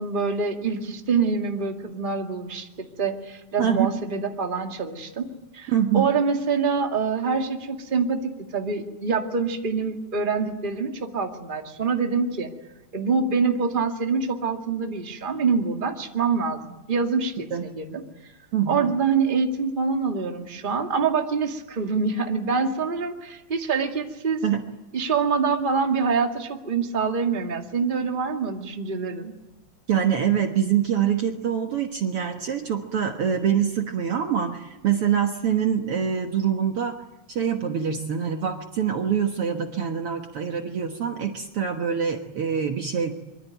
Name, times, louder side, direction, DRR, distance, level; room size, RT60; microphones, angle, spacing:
voice 1, 0.0-12.5 12.9-18.3 18.7-24.4 24.9-29.3, right 5 dB, 20° right, 3 dB, 1.9 m, -25 dB
voice 2, 3.6-3.9 5.7-6.1 17.5-17.7 18.5-18.9 24.4-24.6 29.9-37.0 37.3-43.1, right 8 dB, 55° right, 4 dB, 2.1 m, -24 dB
25.0 x 24.5 x 9.1 m, 1.0 s
omnidirectional pair, 3.4 m